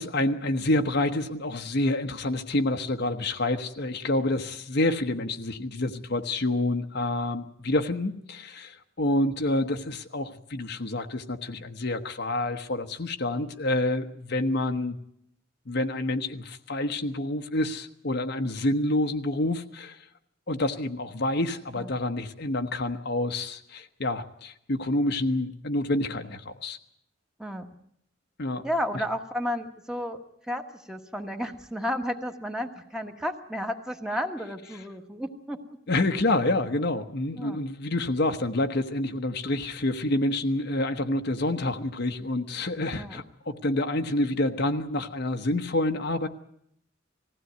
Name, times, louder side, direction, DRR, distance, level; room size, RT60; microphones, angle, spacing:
voice 1, 0.0-15.0 15.7-20.0 20.5-26.8 28.4-28.7 35.9-46.3, left 1 dB, 55° left, 6 dB, 1.1 m, -28 dB
voice 2, 28.6-30.2 30.5-35.6 37.3-37.6 42.9-43.2, equal, 5° right, 4 dB, 1.4 m, -32 dB
19.5 x 15.5 x 9.4 m, 0.72 s
head